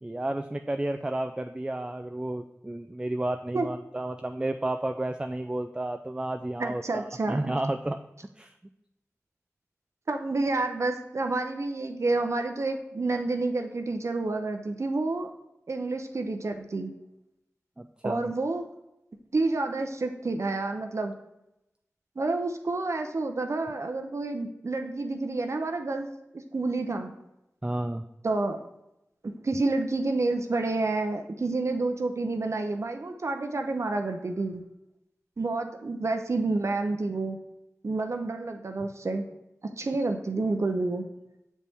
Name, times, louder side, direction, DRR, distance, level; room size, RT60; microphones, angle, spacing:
voice 1, 0.0-8.0 8.4-8.5 17.8-18.3 27.6-28.0, right 1 dB, 15° right, 7 dB, 0.3 m, -32 dB
voice 2, 6.6-7.5 10.1-15.3 15.7-16.9 18.0-18.6 19.3-21.1 22.2-26.1 26.3-27.1 28.2-28.6 29.2-34.6 35.4-37.4 37.8-39.3 39.8-41.0, right 3 dB, 60° right, 5 dB, 0.6 m, -29 dB
7.3 x 4.2 x 3.4 m, 0.89 s
wide cardioid pair, 45°, 5 cm